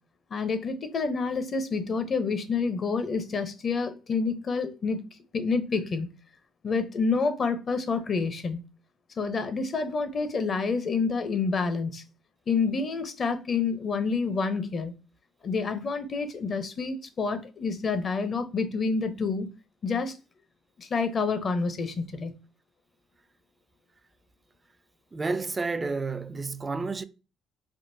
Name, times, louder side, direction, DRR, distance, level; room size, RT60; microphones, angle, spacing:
voice 1, 0.3-5.0 5.3-6.1 6.6-8.6 9.2-12.0 12.5-14.9 15.4-19.5 19.8-20.1 20.8-22.3, left 4 dB, 45° left, 0.6 m, -28 dB
voice 2, 25.1-27.0, right 4 dB, 30° right, 0.3 m, -30 dB
3.6 x 2.4 x 2.6 m
supercardioid pair, 65°, 0 cm